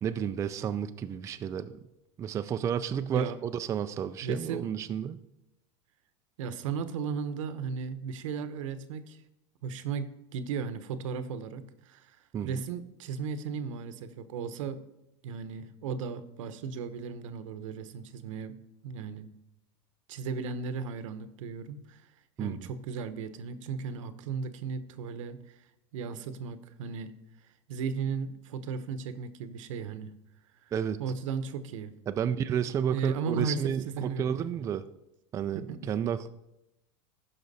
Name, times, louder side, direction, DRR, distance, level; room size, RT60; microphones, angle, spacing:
voice 1, 0.0-1.8 2.2-5.2 12.3-12.6 22.4-22.7 30.7-31.0 32.1-34.8 35.3-36.3, right 8 dB, 20° right, 9 dB, 0.3 m, -31 dB
voice 2, 4.2-4.6 6.4-9.2 9.6-12.2 12.4-14.8 15.2-18.6 18.8-19.3 20.1-22.0 22.4-25.7 25.9-27.1 27.7-30.1 30.6-30.7 31.0-32.0 32.9-34.6 35.5-35.9, right 5 dB, 85° right, 12 dB, 0.9 m, -36 dB
14.5 x 5.8 x 4.1 m, 0.89 s
supercardioid pair, 140°, 16 cm